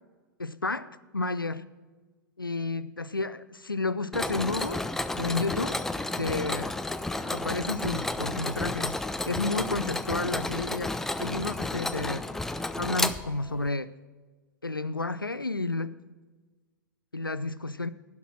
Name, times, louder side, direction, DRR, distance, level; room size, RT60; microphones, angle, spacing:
voice 1, 0.4-1.7 2.4-4.8 5.2-5.8 6.2-6.7 7.3-9.0 9.3-12.2 12.8-13.9 14.6-16.0 17.1-17.9, left 3 dB, 90° left, 16 dB, 0.4 m, -31 dB
Mechanisms, 4.1-13.7, left 2 dB, 5° left, 0.3 m, -32 dB
11.5 x 5.9 x 7.4 m, 1.3 s
figure-of-eight pair, 100°, 11 cm